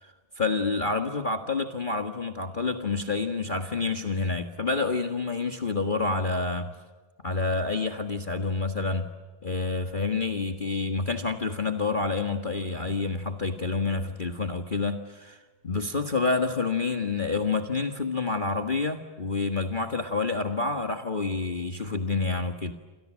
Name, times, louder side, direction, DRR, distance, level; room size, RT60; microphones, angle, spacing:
voice 1, 0.4-6.7 7.2-9.1 9.4-15.4 15.6-22.7, left 3 dB, 25° left, 5 dB, 1.7 m, -28 dB
29.0 x 28.0 x 6.4 m, 1.3 s
omnidirectional pair, 2.1 m